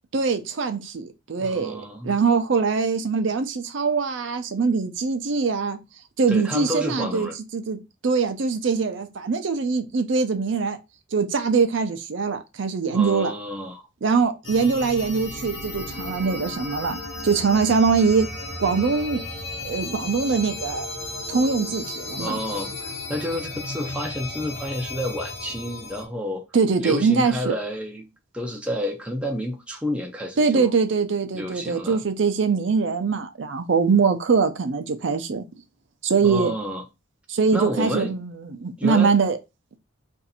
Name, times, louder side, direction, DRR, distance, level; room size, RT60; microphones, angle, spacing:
voice 1, 0.1-5.8 6.2-10.8 11.1-13.3 14.0-18.3 18.6-19.2 19.6-20.9 21.3-22.4 26.5-27.6 30.4-35.4 36.0-36.5 37.3-39.4, right 5 dB, 60° right, 0.5 m, -23 dB
voice 2, 1.4-2.2 6.3-7.3 12.9-13.9 22.2-26.5 26.8-28.1 28.3-30.7 31.3-32.0 36.2-36.8 37.5-38.2 38.8-39.1, left 1 dB, 5° right, 0.4 m, -30 dB
sound 1, 14.4-26.1, left 2 dB, 75° left, 0.9 m, -34 dB
2.7 x 2.5 x 4.0 m
head